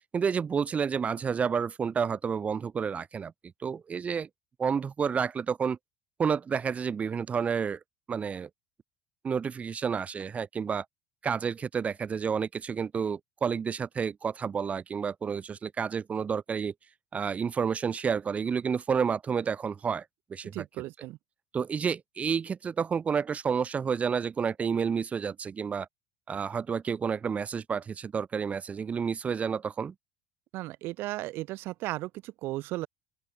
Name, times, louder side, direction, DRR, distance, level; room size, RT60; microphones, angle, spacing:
voice 1, 0.1-3.3 3.6-4.3 4.6-5.8 6.2-7.8 8.1-8.5 9.2-10.9 11.2-16.7 17.1-20.1 20.3-20.6 21.5-25.9 26.3-29.9, right 6 dB, 35° right, 5.4 m, -30 dB
voice 2, 20.5-21.2 30.5-32.9, right 18 dB, 65° right, 5.9 m, -35 dB
open air
hypercardioid pair, 75°, 4 cm